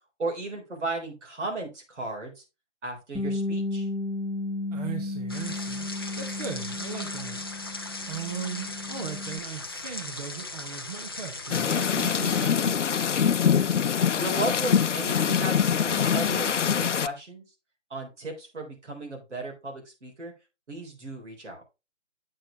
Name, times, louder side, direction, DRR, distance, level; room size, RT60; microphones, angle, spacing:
voice 1, 0.2-2.4 2.8-3.9 14.2-17.4 17.9-20.3 20.7-21.6, right 2 dB, 75° right, 3.8 m, -35 dB
Bass guitar, 3.1-9.4, left 2 dB, ahead, 0.8 m, -33 dB
voice 2, 4.7-5.9 6.1-7.4 8.0-12.8, right 7 dB, 35° right, 1.1 m, -38 dB
sound 1, 5.3-12.5, left 2 dB, 20° left, 0.4 m, -38 dB
sound 2, 11.5-17.1, left 7 dB, 80° left, 0.6 m, -24 dB
7.6 x 6.9 x 3.4 m
figure-of-eight pair, 150°, 36 cm